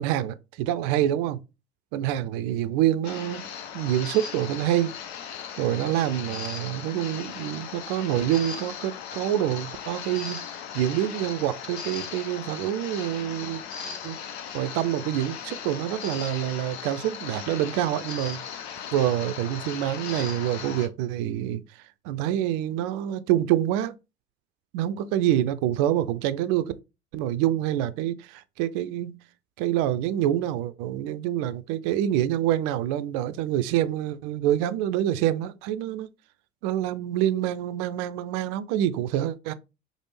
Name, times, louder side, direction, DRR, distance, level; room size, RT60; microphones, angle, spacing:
voice 1, 0.0-1.4 1.9-4.9 5.2-10.4 10.7-13.6 14.0-18.4 18.9-21.6 22.0-23.9 24.7-26.7 27.1-29.2 29.6-36.1 36.6-39.5, right 12 dB, 55° right, 0.4 m, -26 dB
sound 1, 3.0-20.9, left 7 dB, 75° left, 0.6 m, -38 dB
3.3 x 2.0 x 3.1 m
hypercardioid pair, 70°, 32 cm